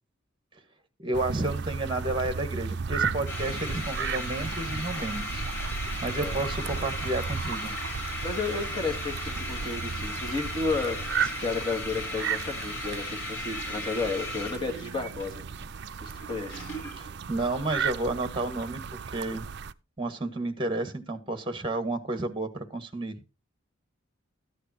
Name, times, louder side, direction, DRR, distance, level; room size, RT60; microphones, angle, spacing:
voice 1, 1.0-5.4 6.0-7.7 17.0-19.4 20.0-23.2, right 2 dB, 25° right, 1.6 m, -31 dB
sound 1, 1.1-19.7, right 6 dB, 50° right, 0.5 m, -35 dB
sound 2, 3.3-17.1, left 2 dB, 55° left, 7.7 m, -37 dB
voice 2, 8.2-15.4 16.0-16.7, left 3 dB, 20° left, 2.2 m, -32 dB
14.0 x 10.0 x 2.8 m
head